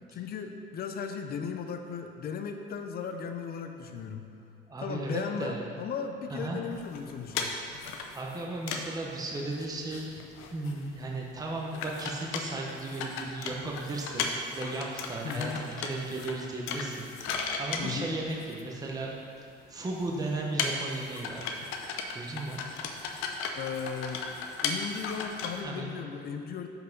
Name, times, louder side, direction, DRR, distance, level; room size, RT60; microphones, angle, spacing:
voice 1, 0.1-4.3 4.8-7.6 15.2-15.6 17.8-18.1 23.5-24.2 24.6-26.7, left 6 dB, 50° left, 6 dB, 0.5 m, -36 dB
voice 2, 4.7-5.6 6.3-6.6 8.1-10.2 10.5-19.1 19.7-21.5 22.1-22.6 25.6-25.9, right 2 dB, 15° right, -2 dB, 0.8 m, -35 dB
sound 1, 6.7-9.0 9.3-9.4 9.5-9.7 9.9-11.0 11.3-11.4 11.7-18.9 19.6-19.7 20.0-25.6, left 5 dB, 85° left, 0.7 m, -36 dB
6.0 x 5.5 x 5.2 m, 2.6 s
cardioid pair, 125°, 21 cm